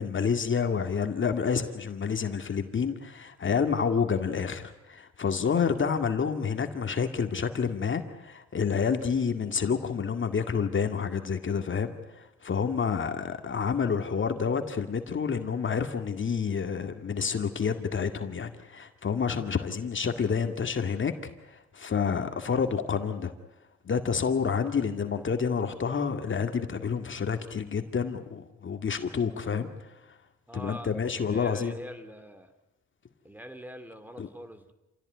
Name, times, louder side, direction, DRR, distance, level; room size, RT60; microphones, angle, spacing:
voice 1, 0.0-21.1 21.5-23.3 23.8-29.7 30.5-31.7 34.2-34.3, left 6 dB, 40° left, 7 dB, 2.1 m, -29 dB
voice 2, 30.5-32.5 33.2-34.7, equal, 5° right, 10 dB, 2.3 m, -44 dB
28.0 x 17.0 x 9.3 m, 0.98 s
cardioid pair, 90°, 30 cm